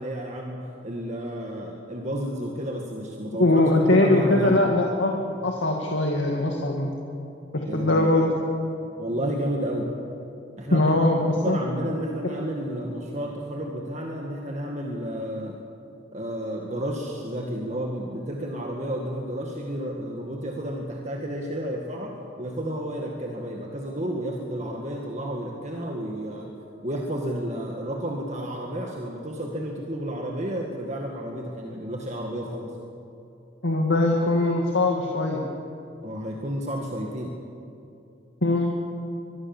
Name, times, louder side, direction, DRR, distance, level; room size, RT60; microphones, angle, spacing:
voice 1, 0.0-3.6 3.9-4.6 7.6-8.3 9.0-9.9 10.6-10.9 11.4-15.5 16.1-26.5 26.8-32.7 36.0-37.3, right 1 dB, 35° right, 0 dB, 2.0 m, -31 dB
voice 2, 3.4-5.2 5.4-6.9 7.5-8.3 10.7-11.6 33.6-35.4 38.4-38.8, left 2 dB, 75° left, 0 dB, 2.2 m, -21 dB
24.0 x 21.5 x 7.4 m, 2.8 s
head